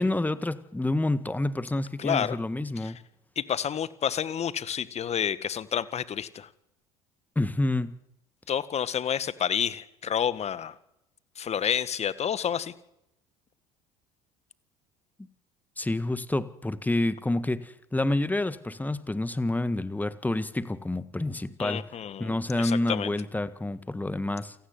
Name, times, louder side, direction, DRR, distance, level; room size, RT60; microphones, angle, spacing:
voice 1, 0.0-3.0 7.4-7.9 15.8-21.9 22.2-24.6, left 2 dB, 10° left, 1.7 m, -28 dB
voice 2, 2.0-2.4 2.8-2.9 3.4-6.5 8.5-10.7 11.4-12.7 21.6-23.1, left 8 dB, 35° left, 1.8 m, -29 dB
28.0 x 17.0 x 9.7 m
figure-of-eight pair, 65°, 18 cm